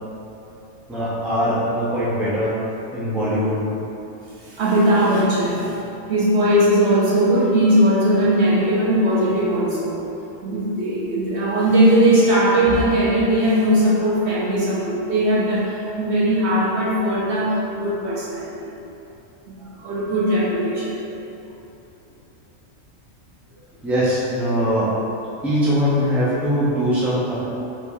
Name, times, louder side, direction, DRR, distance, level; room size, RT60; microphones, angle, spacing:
voice 1, 0.9-2.6 2.9-3.7 23.8-24.9 25.4-27.4, equal, ahead, -9 dB, 0.7 m, -21 dB
voice 2, 4.5-5.8 6.1-10.0 10.4-18.7 19.5-20.9, right 1 dB, 60° right, -6 dB, 1.0 m, -19 dB
4.9 x 3.4 x 2.6 m, 2.9 s
omnidirectional pair, 1.3 m